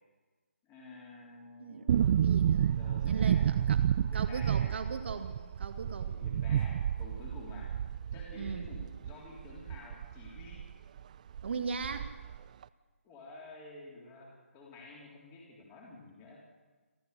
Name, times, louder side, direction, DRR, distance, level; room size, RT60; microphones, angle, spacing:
voice 1, 0.6-2.2 2.7-3.6 3.9-4.8 6.0-7.7 8.1-10.6 13.0-16.4, left 2 dB, 20° left, -2 dB, 3.7 m, -50 dB
voice 2, 1.6-2.8 3.0-6.2 8.4-8.7 11.4-12.2, right 5 dB, 50° right, 8 dB, 2.3 m, -39 dB
sound 1, 1.9-10.7 11.0-11.1 11.3-12.4 12.6-12.7, right 9 dB, 30° right, 0.5 m, -30 dB
29.0 x 13.5 x 6.8 m, 1.3 s
figure-of-eight pair, 155°, 8 cm